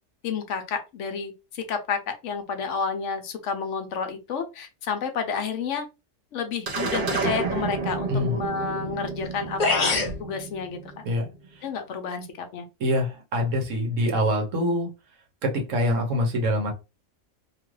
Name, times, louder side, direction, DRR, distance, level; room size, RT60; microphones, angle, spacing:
voice 1, 0.2-5.9 6.3-10.8 11.6-12.6, left 6 dB, 70° left, 0.9 m, -30 dB
sound 1, 6.7-11.3, right 4 dB, 50° right, 0.8 m, -30 dB
sound 2, 9.2-9.3 9.6-10.2, left 3 dB, 40° left, 0.8 m, -23 dB
voice 2, 12.8-14.9 15.4-16.7, equal, 70° right, 1.2 m, -24 dB
2.9 x 2.4 x 3.1 m
omnidirectional pair, 1.4 m